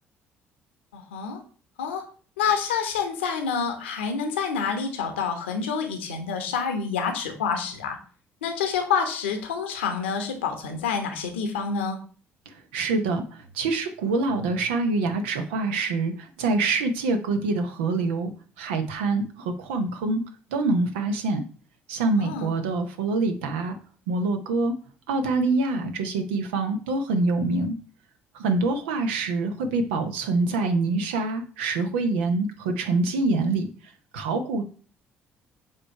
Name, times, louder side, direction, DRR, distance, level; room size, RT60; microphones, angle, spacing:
voice 1, 0.9-1.4 1.8-2.0 2.4-8.0 8.4-12.0 22.2-22.6, left 6 dB, 75° left, 5 dB, 1.0 m, -28 dB
voice 2, 12.5-18.3 18.6-20.2 20.5-21.4 21.9-23.8 24.1-24.7 25.1-27.8 28.3-34.7, right 3 dB, 75° right, 7 dB, 0.8 m, -25 dB
7.4 x 3.3 x 4.5 m, 0.40 s
figure-of-eight pair, 50°, 6 cm